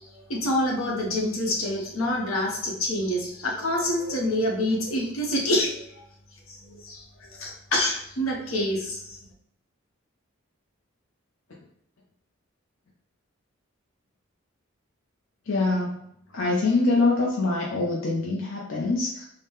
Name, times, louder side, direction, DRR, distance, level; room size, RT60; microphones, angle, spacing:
voice 1, 0.0-6.0 6.5-9.2, left 1 dB, 90° left, -1 dB, 1.0 m, -27 dB
voice 2, 15.5-16.0 16.3-19.3, left 3 dB, 70° left, -3 dB, 0.6 m, -24 dB
3.9 x 2.1 x 3.5 m, 0.73 s
head